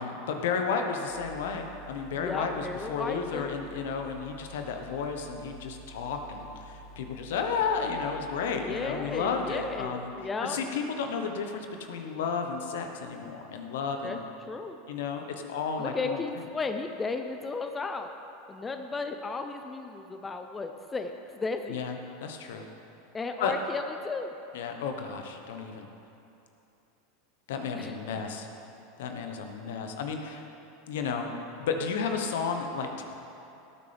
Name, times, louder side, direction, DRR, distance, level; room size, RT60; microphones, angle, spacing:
voice 1, 0.0-10.1 10.4-14.3 14.9-16.2 21.7-21.9 22.2-22.6 23.4-23.5 24.5-25.9 27.5-28.5 29.0-30.4 30.9-31.3 31.6-33.0, left 5 dB, 70° left, 4 dB, 1.2 m, -32 dB
sound 1, 1.1-9.9, right 1 dB, 50° right, 2.6 m, -50 dB
voice 2, 2.1-3.6 8.6-10.6 14.0-14.2 14.4-14.8 15.8-18.2 18.5-21.8 23.1-24.3 27.7-28.2, left 3 dB, 20° left, 6 dB, 0.7 m, -35 dB
18.0 x 8.8 x 3.5 m, 2.9 s
hypercardioid pair, 90°, 0 cm